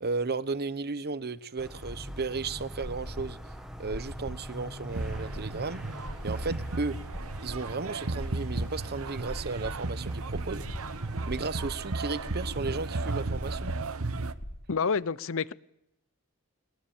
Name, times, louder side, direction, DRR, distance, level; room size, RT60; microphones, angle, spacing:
voice 1, 0.0-5.8 6.2-7.0 7.4-10.6 11.3-13.7, right 4 dB, 45° right, 1.0 m, -34 dB
sound 1, 1.6-13.3, equal, ahead, 1.8 m, -45 dB
sound 2, 2.5-14.6, equal, 45° left, 2.7 m, -42 dB
sound 3, 4.9-14.3, right 3 dB, 65° right, 1.1 m, -35 dB
voice 2, 14.7-15.5, left 5 dB, 65° left, 0.8 m, -28 dB
21.5 x 20.0 x 8.8 m
head